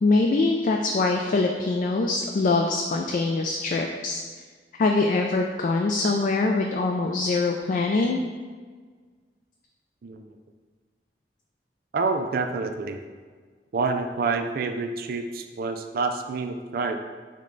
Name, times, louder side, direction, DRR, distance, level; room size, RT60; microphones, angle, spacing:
voice 1, 0.0-4.2 4.8-8.2, left 3 dB, 45° left, 2 dB, 0.3 m, -23 dB
voice 2, 10.0-10.3 11.9-13.0 13.7-17.0, right 4 dB, 55° right, 6 dB, 0.4 m, -27 dB
6.2 x 2.3 x 3.8 m, 1.5 s
head